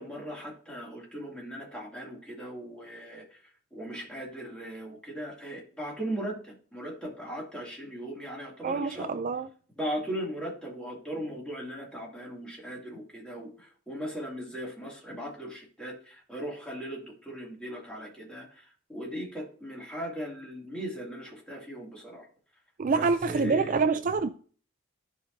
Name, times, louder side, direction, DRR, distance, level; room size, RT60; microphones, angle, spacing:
voice 1, 0.0-9.1 9.8-22.3 23.0-23.8, equal, 5° left, 2.4 m, -38 dB
voice 2, 8.6-9.5 22.8-24.3, right 4 dB, 40° right, 0.3 m, -26 dB
12.5 x 5.1 x 2.7 m
head